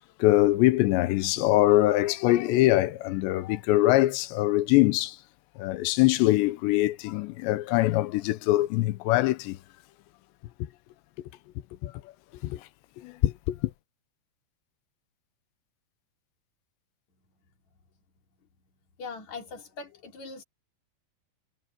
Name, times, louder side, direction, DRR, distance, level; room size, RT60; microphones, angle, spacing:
voice 1, 0.2-5.2 5.6-9.6 11.2-11.3 11.8-11.9 12.4-12.6 13.0-13.7, left 16 dB, 90° left, 3.0 m, -23 dB
voice 2, 19.0-20.4, left 4 dB, 45° left, 3.7 m, -41 dB
omnidirectional pair, 5.0 m